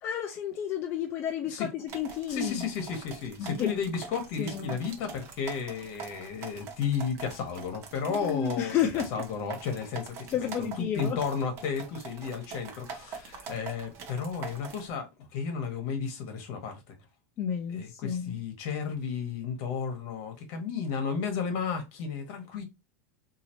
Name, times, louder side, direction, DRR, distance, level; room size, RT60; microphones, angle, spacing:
voice 1, 0.0-2.6 3.4-3.9 4.4-4.8 8.1-9.2 10.3-11.2 17.4-18.4, left 9 dB, 25° left, 0.4 m, -31 dB
sound 1, 1.9-14.9, right 5 dB, 30° right, 0.8 m, -44 dB
voice 2, 2.3-8.7 9.1-16.9 17.7-22.6, left 6 dB, 45° left, 1.3 m, -33 dB
4.0 x 2.7 x 2.9 m
supercardioid pair, 165°, 8 cm